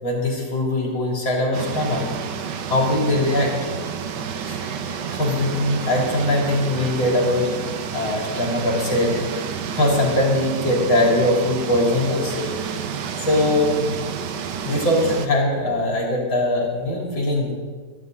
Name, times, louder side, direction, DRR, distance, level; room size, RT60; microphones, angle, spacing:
voice 1, 0.0-2.1 2.7-3.5 4.5-7.5 7.9-9.2 9.7-12.5 13.2-14.0 14.6-17.6, left 1 dB, 85° left, -2 dB, 4.3 m, -21 dB
sound 1, 1.5-15.3, right 7 dB, 65° right, 1.5 m, -30 dB
25.5 x 11.0 x 4.1 m, 1.4 s
omnidirectional pair, 2.1 m